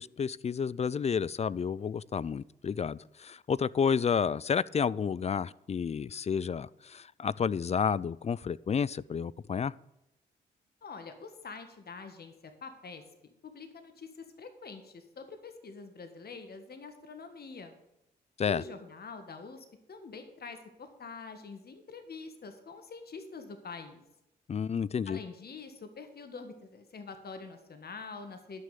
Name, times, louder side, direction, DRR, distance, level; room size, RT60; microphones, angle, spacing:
voice 1, 0.0-9.7 18.4-18.6 24.5-25.2, left 6 dB, 35° left, 0.3 m, -30 dB
voice 2, 10.8-17.8 18.5-24.0 25.1-28.6, left 4 dB, 50° left, 1.5 m, -45 dB
11.0 x 6.3 x 6.8 m
supercardioid pair, 45°, 20 cm